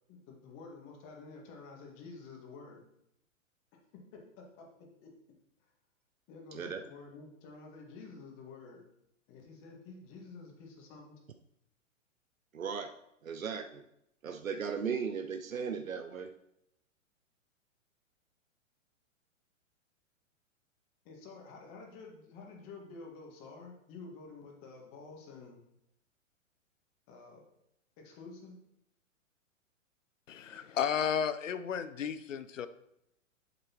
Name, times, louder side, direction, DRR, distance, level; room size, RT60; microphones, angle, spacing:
voice 1, 0.1-2.8 3.9-5.1 6.3-8.8 9.3-11.2 21.0-25.6 27.1-27.4 28.0-28.5, left 4 dB, 30° left, 1 dB, 1.9 m, -50 dB
voice 2, 6.5-6.8 12.5-12.9 13.2-13.8 14.2-16.3, right 6 dB, 90° right, 7 dB, 0.6 m, -36 dB
voice 3, 30.3-32.7, left 7 dB, 70° left, 13 dB, 0.6 m, -33 dB
8.1 x 7.4 x 3.0 m, 0.79 s
figure-of-eight pair, 110°, 40 cm